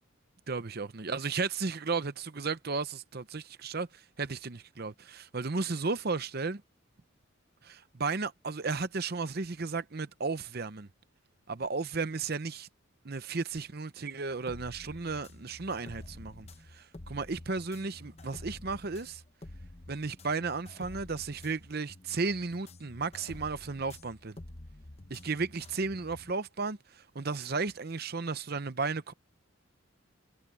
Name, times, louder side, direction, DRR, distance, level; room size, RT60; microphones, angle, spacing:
voice 1, 0.5-6.6 7.6-10.9 11.5-12.7 13.0-19.2 19.9-24.4 25.1-29.1, right 4 dB, 45° right, 0.7 m, -34 dB
sound 1, 14.3-26.3, left 1 dB, 30° left, 0.9 m, -49 dB
head